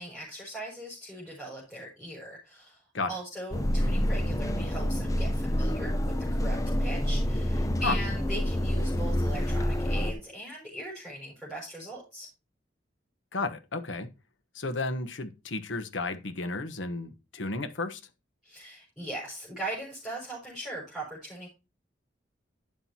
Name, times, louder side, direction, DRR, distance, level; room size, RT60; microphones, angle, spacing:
voice 1, 0.0-2.8 3.1-6.0 6.3-12.3 18.4-21.5, right 1 dB, ahead, 5.8 m, -40 dB
sound 1, 3.5-10.1, equal, 20° left, 0.7 m, -27 dB
voice 2, 13.3-14.1 14.5-18.0, left 3 dB, 85° left, 1.2 m, -32 dB
12.0 x 7.6 x 2.9 m
head